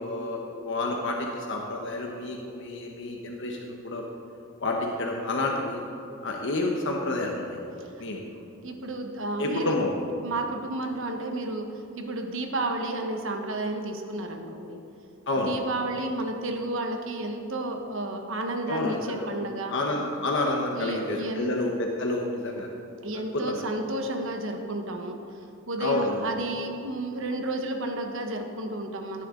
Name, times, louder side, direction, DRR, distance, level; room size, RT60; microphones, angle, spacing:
voice 1, 0.0-4.0 4.6-5.8 6.2-7.6 8.0-8.2 9.4-9.9 15.3-15.5 18.7-19.3 19.7-22.7 23.3-23.7 25.8-26.2, left 2 dB, 60° left, 0 dB, 1.1 m, -29 dB
voice 2, 8.6-9.8 10.2-14.8 15.4-19.7 20.7-21.5 23.0-25.2 25.7-29.2, right 2 dB, 65° right, 4 dB, 1.3 m, -32 dB
17.5 x 10.0 x 3.8 m, 2.8 s
head